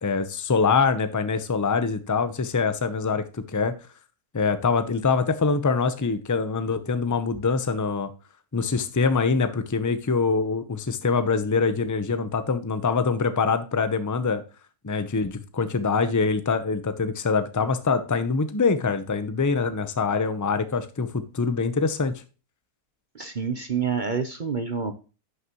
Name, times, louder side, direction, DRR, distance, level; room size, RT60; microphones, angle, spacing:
voice 1, 0.0-3.7 4.3-8.1 8.5-14.4 14.8-22.1, left 4 dB, 25° left, 11 dB, 0.4 m, -24 dB
voice 2, 23.1-24.9, right 6 dB, 45° right, 7 dB, 0.6 m, -28 dB
11.0 x 6.6 x 3.0 m, 0.34 s
omnidirectional pair, 1.7 m